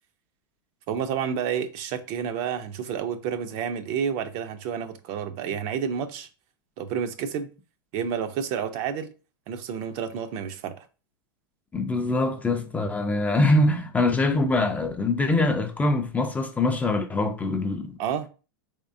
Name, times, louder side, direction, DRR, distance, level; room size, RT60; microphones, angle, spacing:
voice 1, 0.9-6.3 6.8-7.5 7.9-9.1 9.5-10.9 18.0-18.3, right 8 dB, 50° right, 0.5 m, -30 dB
voice 2, 11.7-18.0, left 2 dB, 10° left, 0.4 m, -23 dB
3.5 x 3.3 x 2.6 m
hypercardioid pair, 105°, 12 cm